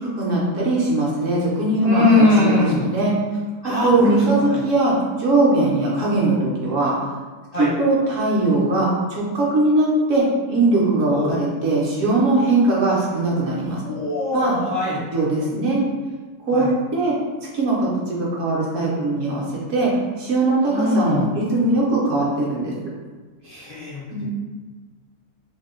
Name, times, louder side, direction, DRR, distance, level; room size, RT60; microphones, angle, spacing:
voice 1, 0.0-3.1 3.6-7.0 7.6-13.8 14.3-14.6 15.1-15.8 16.4-17.2 17.5-19.9 20.2-22.9 24.1-24.3, right 2 dB, 65° right, -5 dB, 0.9 m, -20 dB
voice 2, 1.8-2.8 3.6-4.2 4.5-4.6 7.5-7.7 11.1-11.3 13.8-15.0 16.5-16.7 20.7-21.3 23.4-24.0, left 2 dB, 60° left, -10 dB, 0.4 m, -20 dB
2.7 x 2.1 x 3.5 m, 1.4 s
omnidirectional pair, 1.6 m